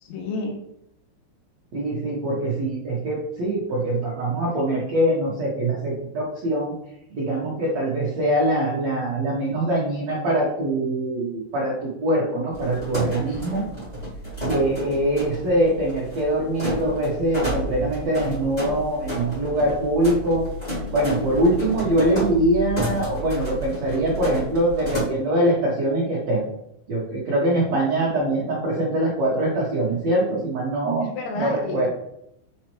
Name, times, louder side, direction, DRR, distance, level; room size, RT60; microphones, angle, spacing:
voice 1, 0.0-0.6 31.0-31.9, left 3 dB, 75° left, 2 dB, 3.1 m, -31 dB
voice 2, 1.7-6.7 7.1-13.6 14.5-20.5 20.9-26.5 26.9-31.1 31.3-31.9, right 1 dB, 90° right, -6 dB, 1.5 m, -23 dB
sound 1, 12.5-25.0, right 1 dB, 20° left, 0.9 m, -31 dB
9.3 x 4.4 x 3.1 m, 0.76 s
omnidirectional pair, 5.8 m